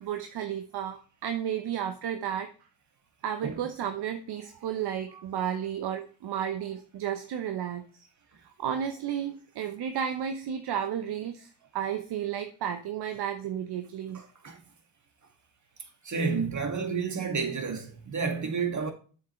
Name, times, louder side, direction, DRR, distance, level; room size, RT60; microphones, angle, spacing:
voice 1, 0.0-2.5 3.2-8.1 8.4-14.2, right 9 dB, 60° right, 0.9 m, -33 dB
voice 2, 16.0-18.9, right 5 dB, 40° right, 2.2 m, -30 dB
7.5 x 7.3 x 3.2 m
hypercardioid pair, 45°, 44 cm